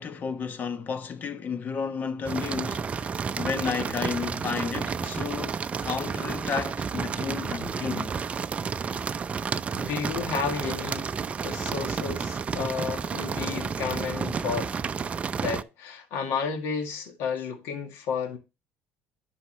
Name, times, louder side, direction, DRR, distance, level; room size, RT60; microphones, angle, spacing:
voice 1, 0.0-8.1, left 6 dB, 40° left, 1.1 m, -32 dB
sound 1, 2.2-15.6, right 6 dB, 30° right, 0.5 m, -31 dB
voice 2, 9.7-11.1 11.4-14.7 15.4-18.4, left 6 dB, 80° left, 2.0 m, -32 dB
11.5 x 5.5 x 3.3 m
cardioid pair, 115°, 5 cm